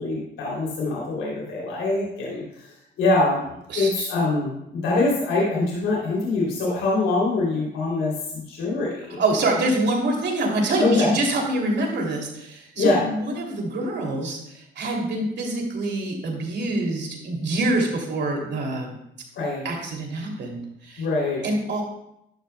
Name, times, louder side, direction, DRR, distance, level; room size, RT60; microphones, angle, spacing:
voice 1, 0.0-2.7 3.0-3.5 3.7-9.2 10.8-11.1 12.8-13.1 19.3-19.7 21.0-21.4, left 2 dB, 85° left, -4 dB, 3.0 m, -24 dB
voice 2, 3.7-4.1 9.2-18.9 19.6-21.0 21.4-21.8, right 2 dB, 60° right, 0 dB, 2.8 m, -25 dB
11.5 x 11.5 x 2.2 m, 0.81 s
cardioid pair, 90°, 20 cm